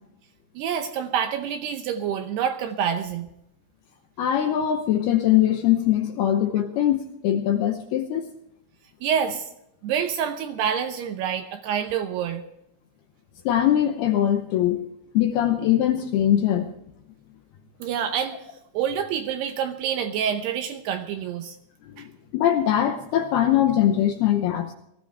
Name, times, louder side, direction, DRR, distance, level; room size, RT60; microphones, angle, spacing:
voice 1, 0.6-3.3 9.0-9.5 9.8-12.4 17.8-18.4 18.7-21.6 22.0-22.1, right 8 dB, 75° right, 7 dB, 2.6 m, -27 dB
voice 2, 4.2-8.3 13.5-14.9 15.1-16.7 21.9-24.7, left 11 dB, 75° left, 6 dB, 2.4 m, -22 dB
19.0 x 14.5 x 3.4 m, 0.78 s
omnidirectional pair, 5.4 m